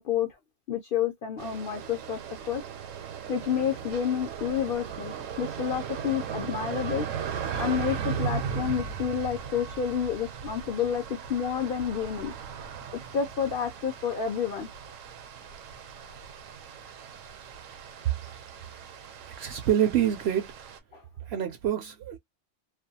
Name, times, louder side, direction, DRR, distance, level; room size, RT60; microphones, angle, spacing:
voice 1, 0.7-2.2 2.5-2.6 3.3-7.1 7.6-12.3 13.1-14.7 20.9-21.0, left 8 dB, 60° left, 0.6 m, -29 dB
sound 1, 1.4-20.8, right 7 dB, 80° right, 1.0 m, -37 dB
voice 2, 19.4-20.5 21.3-22.2, right 10 dB, 65° right, 0.7 m, -26 dB
2.4 x 2.2 x 2.7 m
omnidirectional pair, 1.4 m